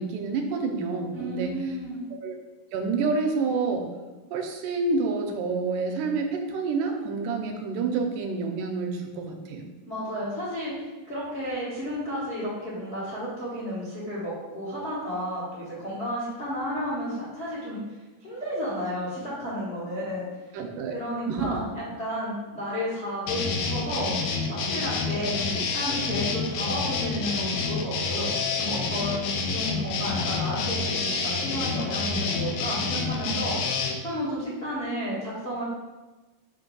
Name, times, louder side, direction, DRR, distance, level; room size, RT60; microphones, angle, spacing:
voice 1, 0.0-1.5 2.2-2.4 2.7-3.9 4.3-9.7 20.5-20.9 21.3-21.7, right 4 dB, 80° right, 3 dB, 2.1 m, -28 dB
voice 2, 1.1-2.0 9.9-10.7 11.0-17.8 18.2-20.2 20.9-24.1 24.5-35.6, equal, 65° left, -8 dB, 0.6 m, -32 dB
sound 1, 23.3-33.9, left 4 dB, 85° left, 1.5 m, -28 dB
5.7 x 3.1 x 5.3 m, 1.2 s
omnidirectional pair, 3.9 m